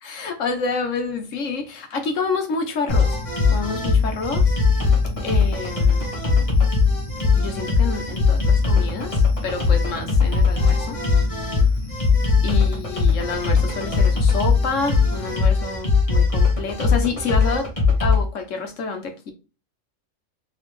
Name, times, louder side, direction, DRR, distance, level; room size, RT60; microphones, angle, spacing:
voice 1, 0.0-3.2 3.5-4.9 5.2-6.1 7.4-11.0 12.4-17.7 18.0-19.3, left 4 dB, 65° left, 1.2 m, -28 dB
sound 1, 2.9-18.2, left 4 dB, 25° left, 1.5 m, -19 dB
4.0 x 3.5 x 3.2 m
omnidirectional pair, 1.5 m